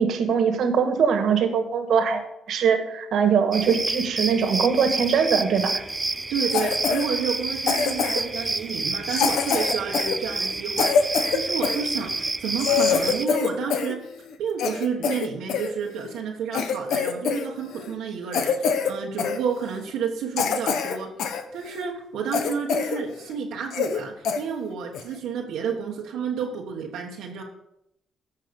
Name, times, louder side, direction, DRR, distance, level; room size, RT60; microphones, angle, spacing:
voice 1, 0.0-2.2 2.5-5.7, right 6 dB, 70° right, 6 dB, 1.7 m, -22 dB
sound 1, 3.5-13.3, right 3 dB, 20° right, 0.5 m, -29 dB
voice 2, 6.3-14.0 14.4-21.1 21.5-27.4, right 6 dB, 85° right, -2 dB, 1.4 m, -30 dB
Cough, 6.5-7.1 7.7-8.4 9.1-11.8 12.3-12.4 12.6-13.9 14.3-15.7 16.2-16.3 16.5-17.5 17.7-17.9 18.3-18.9 19.2-19.4 19.9-20.0 20.4-21.4 21.8-21.9 22.3-23.0 23.3-23.4 23.7-24.0 24.2-24.4 24.9-25.2, left 6 dB, 75° left, 1.1 m, -24 dB
14.5 x 5.5 x 5.3 m, 0.81 s
cardioid pair, 90°, 0 cm